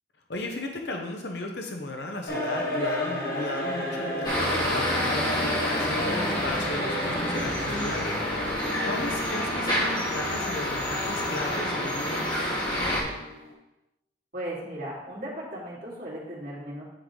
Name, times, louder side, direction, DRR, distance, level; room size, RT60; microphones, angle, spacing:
voice 1, 0.3-8.0 8.8-13.0, left 2 dB, 70° left, 2 dB, 0.9 m, -36 dB
sound 1, 2.3-13.5, left 1 dB, 55° left, 1.6 m, -33 dB
sound 2, 4.2-13.0, equal, 25° left, 1.8 m, -28 dB
voice 2, 14.3-16.8, right 1 dB, 50° right, -6 dB, 2.6 m, -36 dB
10.0 x 3.7 x 3.9 m, 0.95 s
head